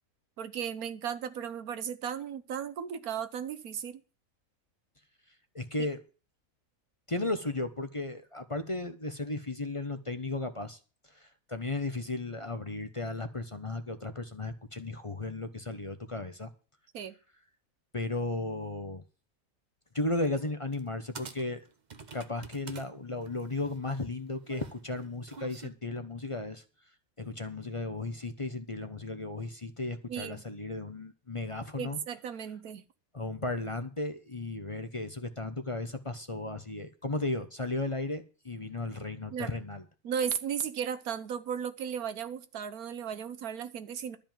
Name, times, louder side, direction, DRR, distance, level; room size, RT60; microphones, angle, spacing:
voice 1, 0.4-4.0 5.8-5.9 16.9-17.1 30.1-30.4 31.8-32.8 39.3-39.5 40.0-44.2, right 8 dB, 85° right, 1.5 m, -35 dB
voice 2, 5.5-6.0 7.1-10.8 11.1-16.5 17.9-19.0 19.9-21.6 22.1-26.6 27.2-32.0 33.1-39.8, left 2 dB, 25° left, 0.9 m, -35 dB
sound 1, 20.7-20.9 21.2-22.9 23.2-25.7, right 5 dB, 35° right, 0.9 m, -47 dB
12.5 x 5.3 x 9.0 m
omnidirectional pair, 1.5 m